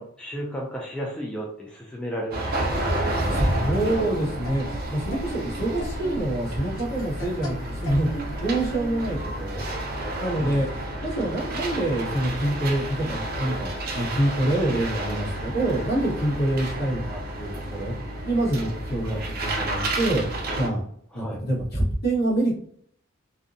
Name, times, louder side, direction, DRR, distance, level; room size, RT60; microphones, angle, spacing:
voice 1, 0.0-2.5 10.4-10.6 19.1-19.2 21.1-21.4, equal, 5° left, -4 dB, 0.3 m, -33 dB
sound 1, 2.3-20.7, right 1 dB, 45° right, 0.5 m, -31 dB
sound 2, 3.2-9.2, right 1 dB, 75° left, 0.9 m, -38 dB
voice 2, 3.3-9.6 10.2-10.6 11.0-17.9 18.2-20.8 21.1-22.5, right 1 dB, 50° left, -5 dB, 1.1 m, -26 dB
2.6 x 2.1 x 2.6 m, 0.64 s
head